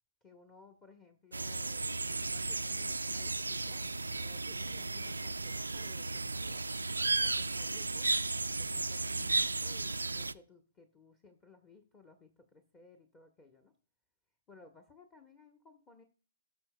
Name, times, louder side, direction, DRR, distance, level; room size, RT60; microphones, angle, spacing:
voice 1, 0.2-6.7 7.2-8.2 8.6-13.7 14.5-16.0, left 4 dB, 20° left, 5 dB, 1.2 m, -59 dB
sound 1, 1.3-10.3, right 3 dB, 85° right, 0.3 m, -34 dB
18.0 x 6.3 x 2.3 m, 0.41 s
figure-of-eight pair, 120°, 0 cm